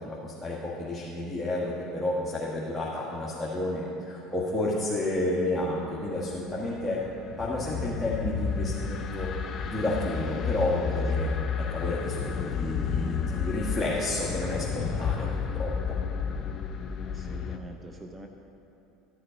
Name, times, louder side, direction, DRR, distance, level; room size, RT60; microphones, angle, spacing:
voice 1, 0.0-7.0 7.4-9.3 9.6-11.3 11.6-15.3 15.5-16.0 16.3-16.4, left 1 dB, 5° left, -7 dB, 1.6 m, -31 dB
sound 1, 5.8-17.6, left 6 dB, 40° left, 0.7 m, -31 dB
voice 2, 17.0-18.3, right 1 dB, 15° right, 3 dB, 0.7 m, -45 dB
13.0 x 6.6 x 5.2 m, 2.8 s
supercardioid pair, 95°, 0 cm